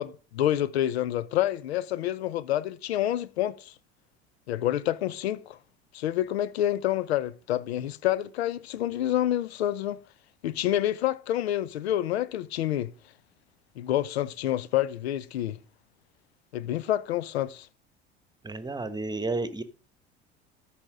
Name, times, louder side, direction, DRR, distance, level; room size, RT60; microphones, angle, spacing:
voice 1, 0.0-3.7 4.5-5.6 5.9-10.0 10.4-12.9 13.8-15.6 16.5-17.7, left 12 dB, 75° left, 0.7 m, -28 dB
voice 2, 18.4-19.6, right 2 dB, 15° right, 1.1 m, -31 dB
13.0 x 5.8 x 3.6 m
figure-of-eight pair, 65°, 32 cm